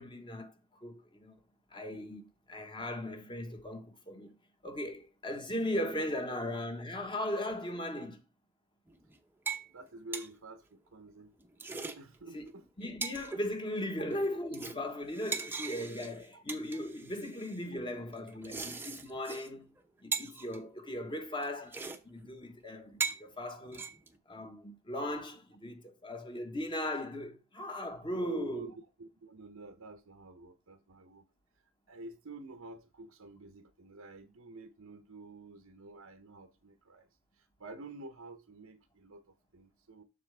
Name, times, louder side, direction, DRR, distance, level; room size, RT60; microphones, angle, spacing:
voice 1, 0.0-1.4 1.7-4.4 4.6-8.2 12.3-12.4 12.8-19.7 20.0-23.9 24.3-28.7, left 1 dB, 25° left, 1.3 m, -38 dB
sound 1, 8.9-9.2 9.5-9.7 10.0-10.3 11.4-12.0 12.5-12.6 12.8-13.4 13.9-14.2 14.5-17.6 18.3-19.5 19.8-19.9 20.1-20.6 21.4-21.5 21.7-22.0 22.3-22.4 22.9-23.2 23.7-24.2, right 5 dB, 10° right, 0.8 m, -39 dB
voice 2, 9.7-11.3 11.9-12.6 16.3-16.4 28.1-31.2 31.9-37.1 37.4-39.2 39.5-40.0, right 2 dB, 85° right, 0.9 m, -49 dB
7.4 x 6.4 x 3.4 m
head